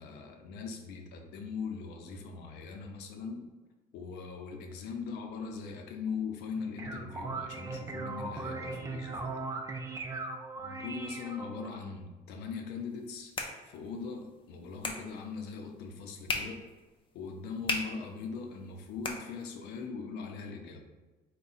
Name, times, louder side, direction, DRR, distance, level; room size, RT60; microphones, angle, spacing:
voice 1, 0.0-3.5 3.9-9.4 10.6-13.3 13.6-16.6 17.1-20.8, left 5 dB, 85° left, 3 dB, 0.6 m, -40 dB
sound 1, 6.5-11.8, right 3 dB, 20° right, 0.5 m, -39 dB
sound 2, 12.8-19.9, left 3 dB, 30° left, 0.6 m, -41 dB
4.7 x 2.2 x 4.0 m, 1.2 s
cardioid pair, 110°, 17 cm